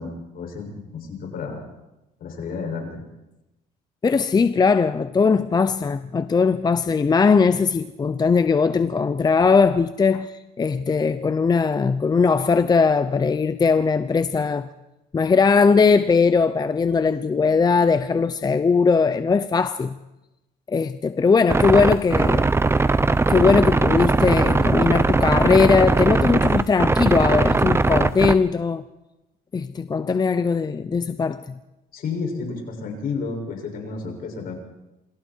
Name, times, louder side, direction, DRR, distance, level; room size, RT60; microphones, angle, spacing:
voice 1, 0.0-1.6 2.2-3.0 31.9-34.6, left 4 dB, 60° left, 6.8 m, -31 dB
voice 2, 4.0-14.7 15.1-20.0 20.7-22.5 23.3-28.8 29.5-31.6, left 5 dB, 25° left, 0.8 m, -19 dB
sound 1, 21.5-28.4, right 3 dB, 15° right, 0.9 m, -19 dB
28.0 x 23.0 x 4.7 m
cardioid pair, 110°, 17 cm